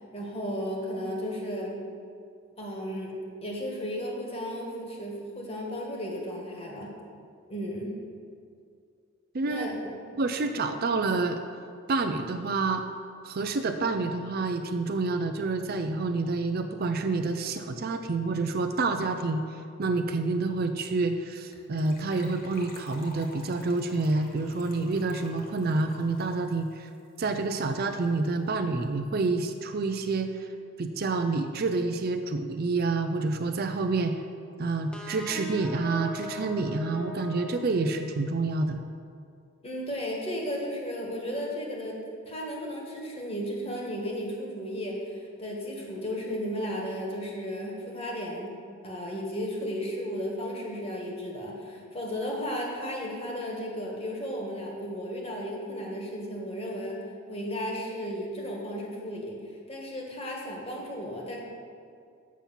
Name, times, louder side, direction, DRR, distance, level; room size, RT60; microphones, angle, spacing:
voice 1, 0.1-1.8 2.6-7.0 7.5-8.0 9.5-9.8 39.6-48.6 48.8-59.4 59.7-61.4, equal, 30° left, -2 dB, 1.5 m, -34 dB
voice 2, 9.3-9.7 10.2-11.4 11.9-12.8 13.2-19.4 19.8-26.9 27.2-30.5 30.8-34.2 34.6-38.8, right 3 dB, 45° right, 7 dB, 0.4 m, -28 dB
Gurgling / Trickle dribble / Fill (with liquid), 21.5-27.8 28.0-28.1 28.3-28.5 28.8-28.9, left 2 dB, 45° left, 1.4 m, -49 dB
sound 1, 34.9-38.4, left 1 dB, 5° left, 0.7 m, -40 dB
7.3 x 5.7 x 7.2 m, 2.3 s
head